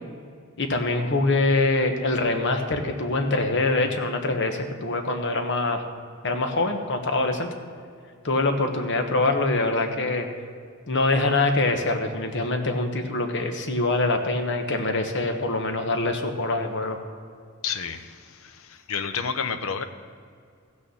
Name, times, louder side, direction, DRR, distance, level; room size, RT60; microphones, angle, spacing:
voice 1, 0.6-5.8 6.2-7.5 8.2-10.3 10.9-17.0, left 2 dB, 60° left, 5 dB, 1.2 m, -24 dB
voice 2, 17.6-19.8, left 6 dB, 80° left, 10 dB, 0.8 m, -30 dB
15.0 x 6.5 x 7.1 m, 2.2 s
head